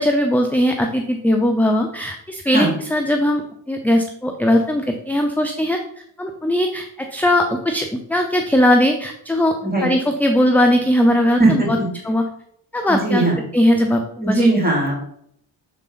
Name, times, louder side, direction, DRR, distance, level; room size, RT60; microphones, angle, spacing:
voice 1, 0.0-5.8 6.2-9.6 9.8-11.8 12.0-12.2 12.7-13.3 13.5-14.5, left 1 dB, 5° left, 4 dB, 0.5 m, -19 dB
voice 2, 11.4-11.9 12.9-13.4 14.2-15.0, right 2 dB, 20° right, -1 dB, 2.6 m, -18 dB
6.5 x 4.1 x 3.9 m, 0.70 s
cardioid pair, 80°, 48 cm